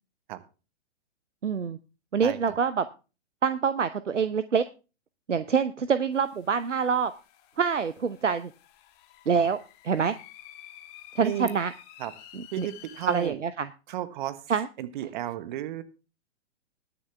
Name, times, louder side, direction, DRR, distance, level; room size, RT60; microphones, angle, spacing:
voice 1, 1.4-1.8 2.1-2.9 3.4-4.6 5.3-7.1 7.6-8.5 9.3-9.6 9.8-10.2 11.2-11.7 12.3-12.7 13.1-13.7 14.5-14.7, right 6 dB, 80° right, 13 dB, 0.8 m, -25 dB
voice 2, 2.2-2.5 9.4-9.5 11.2-11.5 12.0-12.1 12.5-13.4 13.9-14.4 14.8-15.8, right 13 dB, 40° right, 13 dB, 1.3 m, -33 dB
sound 1, 6.1-13.3, left 11 dB, 30° left, 1.7 m, -51 dB
20.5 x 7.0 x 3.4 m, 0.32 s
figure-of-eight pair, 115°, 36 cm